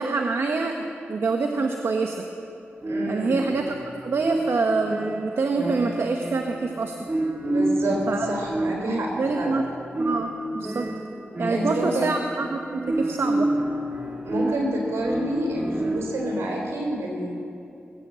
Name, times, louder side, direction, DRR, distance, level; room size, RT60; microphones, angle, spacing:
voice 1, 0.0-2.2 3.1-3.8 4.0-7.0 8.1-8.3 8.8-9.7 10.0-10.9 11.4-13.5, right 4 dB, 70° right, 4 dB, 0.9 m, -26 dB
sound 1, 2.8-16.4, right 1 dB, 35° right, 1.9 m, -29 dB
voice 2, 2.9-3.4 7.4-9.6 11.5-12.1 14.2-17.4, right 1 dB, 85° right, 0 dB, 3.7 m, -28 dB
20.5 x 8.8 x 7.6 m, 2.7 s
cardioid pair, 50°, 5 cm